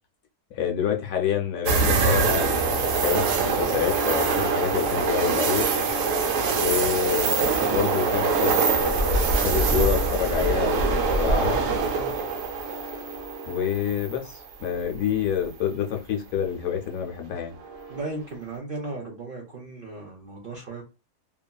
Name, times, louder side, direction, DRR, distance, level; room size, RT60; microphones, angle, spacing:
voice 1, 0.5-5.7 6.6-11.6 13.5-17.5, left 9 dB, 70° left, 0.9 m, -27 dB
sound 1, 1.7-14.7 15.1-15.2 17.6-18.0, right 4 dB, 65° right, 0.8 m, -24 dB
voice 2, 17.9-20.8, right 3 dB, 90° right, 0.4 m, -36 dB
2.7 x 2.5 x 2.2 m
omnidirectional pair, 1.7 m